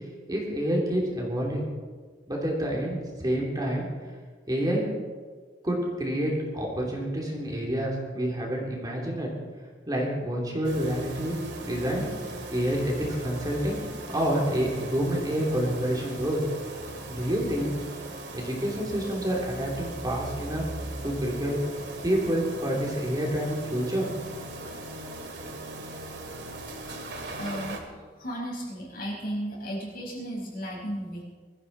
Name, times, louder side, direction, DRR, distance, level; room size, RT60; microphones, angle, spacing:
voice 1, 0.3-1.6 2.3-3.9 4.5-4.9 5.6-9.3 9.9-12.1 12.5-13.8 14.1-16.4 17.1-17.7 18.3-20.6 21.0-21.6 22.0-24.1, equal, 20° right, -2 dB, 3.0 m, -28 dB
sound 1, 10.6-27.8, right 2 dB, 70° right, 2.3 m, -39 dB
voice 2, 27.4-27.8 28.2-31.2, equal, 55° left, -2 dB, 5.2 m, -34 dB
22.5 x 14.5 x 4.2 m, 1.5 s
head